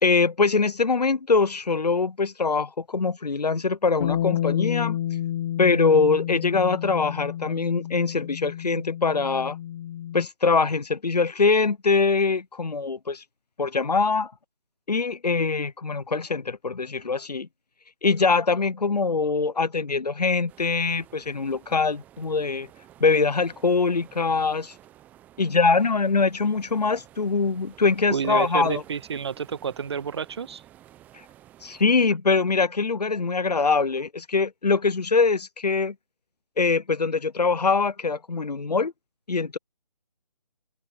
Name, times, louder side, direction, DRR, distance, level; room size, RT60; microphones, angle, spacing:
voice 1, 0.0-5.0 5.6-9.6 10.1-13.2 13.6-14.3 14.9-17.5 18.0-22.7 23.0-24.7 25.4-28.8 31.6-35.9 36.6-38.9 39.3-39.6, left 4 dB, 75° left, 0.9 m, -23 dB
Bass guitar, 4.0-10.3, left 11 dB, 10° left, 0.5 m, -30 dB
sound 1, 20.5-32.1, right 13 dB, 10° right, 1.2 m, -52 dB
voice 2, 28.1-30.6, right 6 dB, 40° right, 1.7 m, -29 dB
figure-of-eight pair, 150°, 21 cm